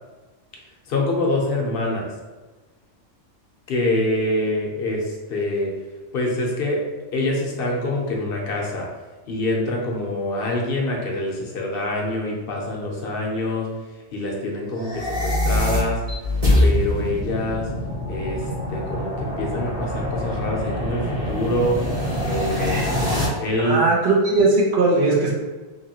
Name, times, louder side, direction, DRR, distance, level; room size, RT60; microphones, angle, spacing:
voice 1, 0.9-2.1 3.7-5.7 6.1-6.8 7.1-8.9 9.3-13.7 14.1-16.0 16.6-17.7 18.1-21.8 22.2-23.0 23.4-23.8, left 1 dB, 60° left, -1 dB, 0.7 m, -25 dB
sound 1, 14.8-23.3, left 1 dB, 30° right, 1.0 m, -24 dB
voice 2, 22.6-22.9 23.6-25.3, right 2 dB, 65° right, -3 dB, 0.8 m, -19 dB
2.9 x 2.7 x 2.7 m, 1.2 s
omnidirectional pair, 1.3 m